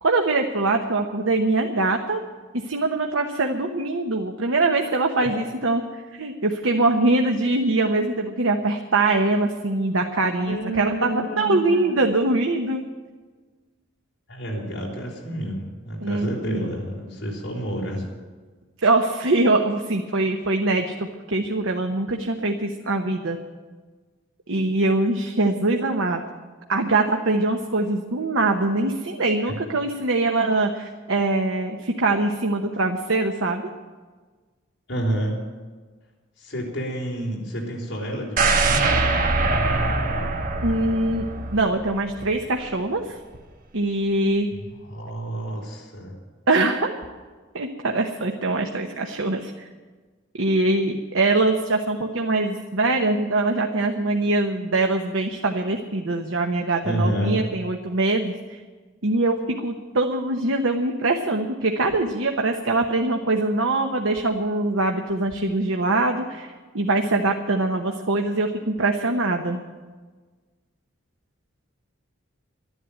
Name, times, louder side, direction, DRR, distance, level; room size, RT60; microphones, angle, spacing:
voice 1, 0.0-2.2 2.6-12.8 16.0-16.7 18.8-23.4 24.5-26.2 26.7-33.6 40.6-41.3 41.5-43.2 43.7-44.5 46.5-47.0 47.5-49.5 50.4-58.6 59.0-69.6, right 2 dB, 90° right, 3 dB, 1.0 m, -23 dB
voice 2, 10.5-12.2 14.3-18.0 29.5-29.6 34.9-35.4 36.4-39.0 44.8-46.1 56.8-57.4, right 1 dB, 60° left, -2 dB, 4.4 m, -29 dB
sound 1, 38.4-42.3 42.7-42.8, right 3 dB, 45° right, 1.2 m, -23 dB
12.5 x 11.0 x 9.0 m, 1.4 s
head